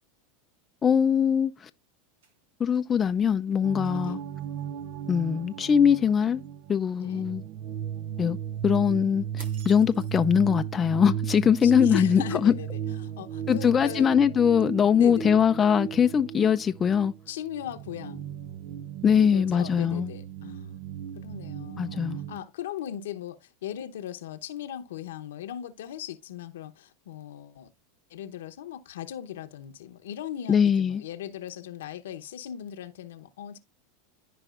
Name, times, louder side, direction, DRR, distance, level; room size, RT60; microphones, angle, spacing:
voice 1, 0.8-1.7 2.6-4.2 5.1-6.4 6.7-7.4 8.2-8.4 8.6-12.5 13.5-17.1 19.0-20.1 21.8-22.2 30.5-31.0, left 7 dB, 25° left, 0.4 m, -22 dB
sound 1, 2.0-2.9 3.3-3.4 3.8-4.0 4.4-4.6 9.4-10.5, right 6 dB, 80° right, 1.4 m, -51 dB
sound 2, 3.6-22.4, right 10 dB, 60° right, 0.5 m, -36 dB
voice 2, 7.0-7.3 11.6-14.1 14.9-15.4 17.3-18.2 19.2-20.7 21.1-27.7 28.1-33.6, left 11 dB, 80° left, 0.8 m, -38 dB
13.5 x 4.9 x 2.4 m
hypercardioid pair, 100°, 0 cm